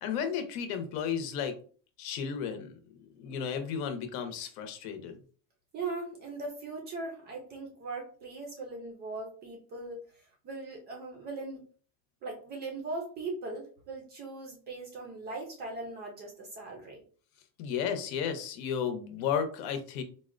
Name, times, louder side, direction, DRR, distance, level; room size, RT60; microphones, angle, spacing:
voice 1, 0.0-1.6 2.0-2.7 3.2-5.1 17.6-20.0, left 7 dB, 75° left, 8 dB, 0.8 m, -33 dB
voice 2, 5.7-11.6 12.2-17.0, right 3 dB, 25° right, 1 dB, 0.3 m, -39 dB
4.0 x 2.1 x 2.5 m, 0.42 s
cardioid pair, 175°, 43 cm